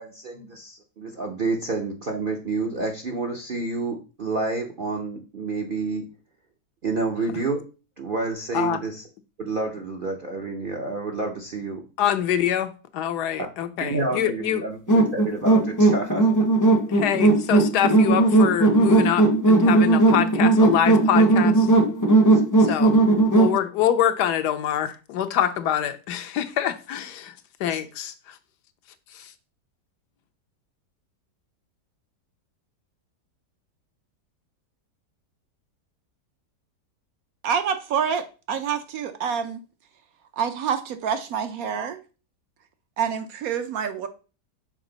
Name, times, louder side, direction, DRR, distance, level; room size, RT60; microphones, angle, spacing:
voice 1, 0.0-6.0 6.8-7.6 8.0-9.0 9.4-11.8 13.4-13.5 13.8-16.3 22.3-22.4 22.7-22.8 27.7-27.8, right 3 dB, 50° right, 0.6 m, -29 dB
voice 2, 12.0-14.6 16.9-21.7 22.7-22.9 23.3-27.3 27.6-28.3 29.1-29.3, left 10 dB, 75° left, 1.2 m, -25 dB
sound 1, 14.9-23.6, right 2 dB, 20° left, 0.5 m, -17 dB
voice 3, 37.4-39.6 40.4-42.0 43.0-44.1, right 7 dB, 70° right, 1.0 m, -27 dB
6.1 x 4.4 x 3.8 m
omnidirectional pair, 1.8 m